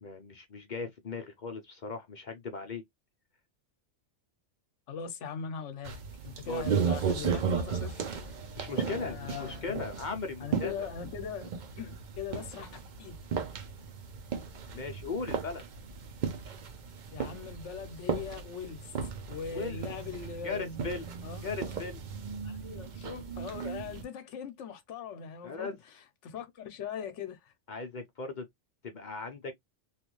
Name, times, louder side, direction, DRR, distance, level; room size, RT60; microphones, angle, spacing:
voice 1, 0.0-2.8 6.5-6.7 8.6-10.9 14.7-15.6 19.5-19.8 20.4-21.1 21.4-22.0 25.4-25.8 27.7-28.4 28.8-29.5, left 4 dB, 50° left, 0.6 m, -38 dB
voice 2, 4.9-8.4 8.7-9.8 10.4-12.7 13.0-13.2 17.1-18.9 19.3-20.8 21.2-21.4 22.4-25.8 26.2-27.5, left 7 dB, 70° left, 1.0 m, -41 dB
sound 1, 5.8-24.0, right 6 dB, 55° right, 0.5 m, -36 dB
3.1 x 2.5 x 3.0 m
omnidirectional pair, 1.3 m